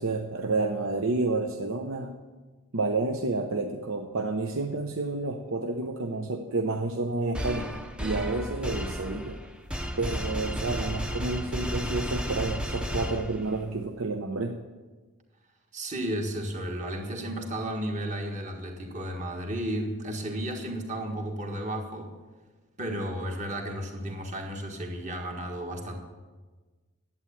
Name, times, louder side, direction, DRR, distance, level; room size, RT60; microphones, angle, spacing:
voice 1, 0.0-2.1 2.7-7.7 8.0-9.4 10.0-14.5, right 3 dB, 60° right, 4 dB, 0.8 m, -30 dB
sound 1, 7.3-13.7, equal, 5° right, 0.6 m, -33 dB
voice 2, 15.7-22.1 22.8-25.9, right 1 dB, 30° right, 2 dB, 1.7 m, -33 dB
11.5 x 8.5 x 8.6 m, 1.3 s
head